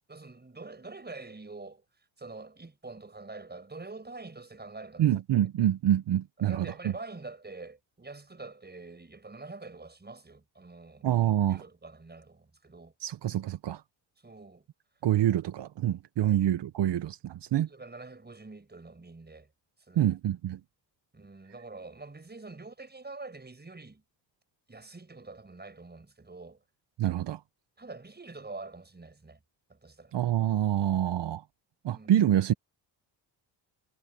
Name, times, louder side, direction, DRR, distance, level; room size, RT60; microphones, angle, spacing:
voice 1, 0.1-5.1 6.4-12.9 14.2-14.7 16.2-16.4 17.6-19.5 19.9-20.1 21.1-24.0 24.7-26.6 27.8-29.4 29.7-30.2 31.9-32.2, right 3 dB, 20° right, 6.4 m, -46 dB
voice 2, 5.0-6.9 11.0-11.6 13.0-13.8 15.0-17.7 19.9-20.6 27.0-27.4 30.1-31.4 31.8-32.5, right 12 dB, 70° right, 1.2 m, -26 dB
cardioid pair, 75°, 44 cm